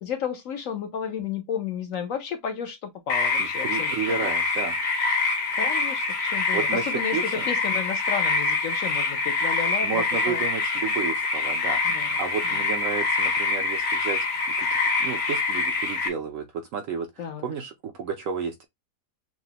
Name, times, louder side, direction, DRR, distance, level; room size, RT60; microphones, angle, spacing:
voice 1, 0.0-4.3 5.5-10.4 11.8-12.6 17.2-17.5, left 7 dB, 65° left, 0.9 m, -33 dB
sound 1, 3.1-16.1, left 3 dB, 80° left, 1.7 m, -25 dB
voice 2, 3.4-4.8 6.5-7.5 9.8-14.3 14.6-14.7 15.0-16.5 16.7-18.6, right 6 dB, 65° right, 0.8 m, -32 dB
5.9 x 2.1 x 2.8 m
omnidirectional pair, 1.8 m